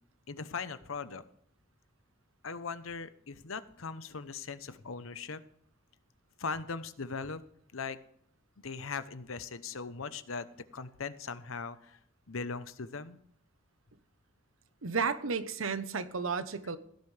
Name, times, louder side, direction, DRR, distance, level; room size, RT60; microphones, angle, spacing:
voice 1, 0.3-1.2 2.4-5.4 6.4-7.4 7.7-8.0 8.6-10.5 10.7-12.0 12.3-13.2, left 5 dB, 85° left, 13 dB, 0.9 m, -39 dB
voice 2, 14.8-16.8, right 5 dB, 85° right, 12 dB, 1.0 m, -32 dB
16.5 x 11.0 x 3.4 m, 0.70 s
head